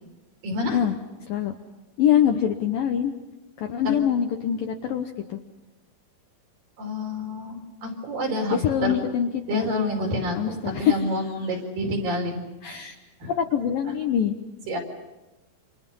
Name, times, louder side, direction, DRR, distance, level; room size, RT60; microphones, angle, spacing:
voice 1, 0.4-0.8 3.8-3.9 6.8-9.0 9.5-12.5 13.2-13.3 14.7-14.8, left 1 dB, 50° right, 1 dB, 5.9 m, -28 dB
voice 2, 2.0-3.1 3.6-5.4 8.5-9.7 10.4-11.1 12.6-12.9 13.3-14.4, left 9 dB, 70° left, 5 dB, 2.2 m, -24 dB
29.5 x 27.5 x 5.5 m, 1.1 s
omnidirectional pair, 5.3 m